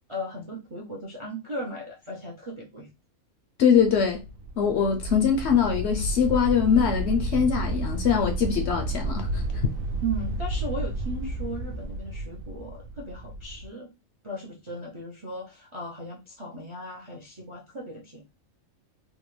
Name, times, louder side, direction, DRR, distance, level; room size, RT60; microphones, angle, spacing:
voice 1, 0.1-2.9 10.0-13.9 14.2-18.2, right 1 dB, 40° right, 0.4 m, -37 dB
voice 2, 3.6-4.2 4.6-9.4, left 7 dB, 65° left, 0.7 m, -22 dB
sound 1, 3.7-13.7, right 1 dB, 75° right, 1.0 m, -31 dB
3.6 x 2.2 x 3.1 m
omnidirectional pair, 1.4 m